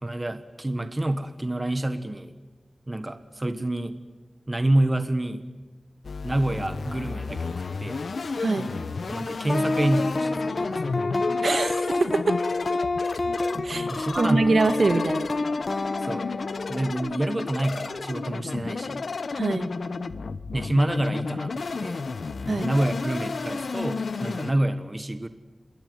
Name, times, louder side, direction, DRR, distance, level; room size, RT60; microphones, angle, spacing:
voice 1, 0.0-2.3 2.9-4.0 4.5-5.4 6.2-8.0 9.1-10.8 13.9-14.5 16.0-16.3 16.7-19.0 20.5-22.0 22.6-25.3, right 1 dB, 25° right, 10 dB, 1.3 m, -27 dB
sound 1, 6.0-24.5, left 4 dB, 80° left, 1.0 m, -33 dB
voice 2, 8.4-8.7 11.4-12.4 13.6-13.9 14.2-15.3 19.3-19.7 22.5-22.7, right 3 dB, 65° right, 9 dB, 2.1 m, -24 dB
sound 2, 9.5-16.9, left 3 dB, 50° left, 1.5 m, -28 dB
26.5 x 21.5 x 9.4 m, 1.3 s
wide cardioid pair, 70°, 0 cm